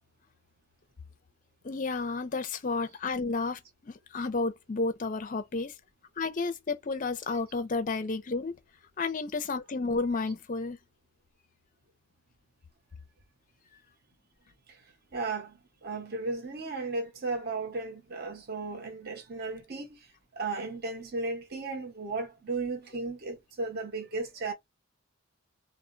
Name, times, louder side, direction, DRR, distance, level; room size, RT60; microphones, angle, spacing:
voice 1, 1.6-5.7 6.2-8.5 9.0-10.8, left 3 dB, 40° left, 0.4 m, -31 dB
voice 2, 15.1-15.5 15.8-19.9 20.3-24.5, right 3 dB, 45° right, 0.7 m, -35 dB
2.1 x 2.0 x 3.7 m
head